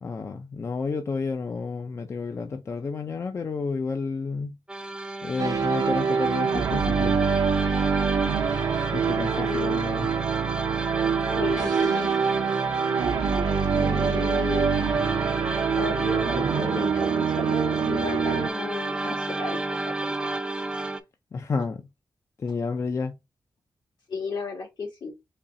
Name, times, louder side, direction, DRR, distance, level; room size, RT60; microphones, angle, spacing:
voice 1, 0.0-4.6 5.2-7.2 8.9-10.1 13.6-13.9 21.3-21.8 22.4-23.1, left 4 dB, 40° left, 0.5 m, -30 dB
sound 1, 4.7-21.0, right 2 dB, 10° right, 0.5 m, -32 dB
sound 2, 5.4-18.5, right 6 dB, 60° right, 0.5 m, -25 dB
voice 2, 9.3-9.8 11.3-12.1 13.8-14.8 15.8-20.4 24.1-25.1, left 3 dB, 75° left, 2.4 m, -33 dB
4.2 x 3.1 x 3.7 m
wide cardioid pair, 170°, 8 cm